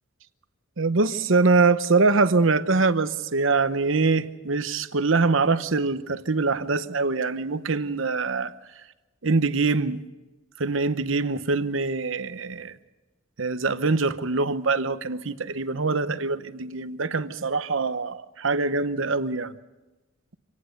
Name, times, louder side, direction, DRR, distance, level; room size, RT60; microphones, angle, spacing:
voice 1, 0.8-8.5 9.2-10.0 10.6-12.7 13.4-19.5, right 3 dB, 65° right, 0.9 m, -24 dB
26.0 x 18.0 x 6.6 m
head